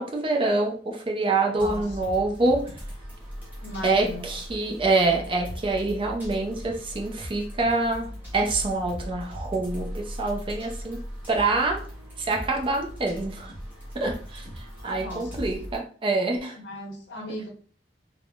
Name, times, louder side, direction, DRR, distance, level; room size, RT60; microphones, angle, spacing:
voice 1, 0.0-2.7 3.8-11.0 11.3-11.8 12.2-13.5 13.9-16.6, right 3 dB, 30° right, 2 dB, 0.4 m, -26 dB
voice 2, 1.5-2.2 3.6-4.3 15.0-15.4 16.6-17.5, left 1 dB, 90° left, 1 dB, 0.7 m, -37 dB
sound 1, 1.6-15.8, equal, 10° right, 0.9 m, -39 dB
3.4 x 2.0 x 2.3 m, 0.43 s
head